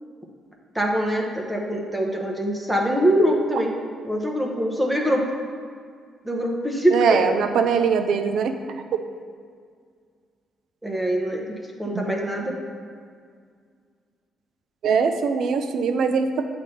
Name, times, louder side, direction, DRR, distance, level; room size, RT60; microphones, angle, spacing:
voice 1, 0.7-3.7 4.0-5.3 6.2-7.2 10.8-11.4 11.8-12.6, equal, 5° right, 0 dB, 0.8 m, -23 dB
voice 2, 6.9-8.6 11.9-12.0 14.8-16.4, right 6 dB, 70° right, 7 dB, 0.5 m, -21 dB
7.4 x 3.4 x 5.5 m, 2.1 s
cardioid pair, 90°, 0 cm